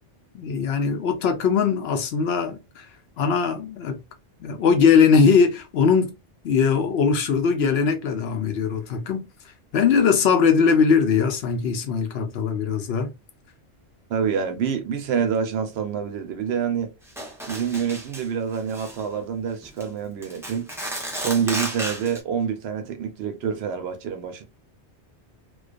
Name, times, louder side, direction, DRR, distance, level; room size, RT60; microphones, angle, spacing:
voice 1, 0.3-2.9 3.2-4.0 4.4-6.1 6.4-9.3 9.7-13.1, left 6 dB, 70° left, 0.8 m, -20 dB
voice 2, 14.1-16.9 17.5-20.7 21.1-24.4, right 7 dB, 70° right, 0.8 m, -27 dB
sound 1, 17.2-18.3 18.5-19.0 19.6-19.8 20.2-22.2, right 1 dB, 5° right, 0.5 m, -33 dB
2.4 x 2.2 x 2.4 m
omnidirectional pair, 1.2 m